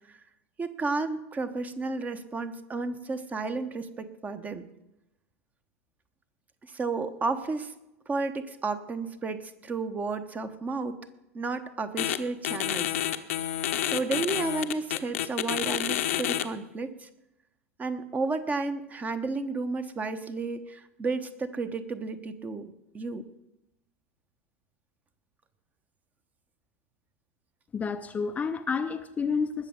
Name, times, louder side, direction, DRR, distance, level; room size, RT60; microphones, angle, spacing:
voice 1, 0.6-4.7 6.7-7.7 8.1-11.0 11.3-13.0 13.9-17.1 17.8-23.3, right 3 dB, 20° right, 11 dB, 1.1 m, -32 dB
sound 1, 12.0-12.2 12.4-16.4, left 12 dB, 65° left, 0.8 m, -29 dB
voice 2, 27.7-29.7, left 5 dB, 20° left, 8 dB, 0.6 m, -30 dB
20.0 x 7.0 x 5.3 m, 0.92 s
figure-of-eight pair, 85°, 8 cm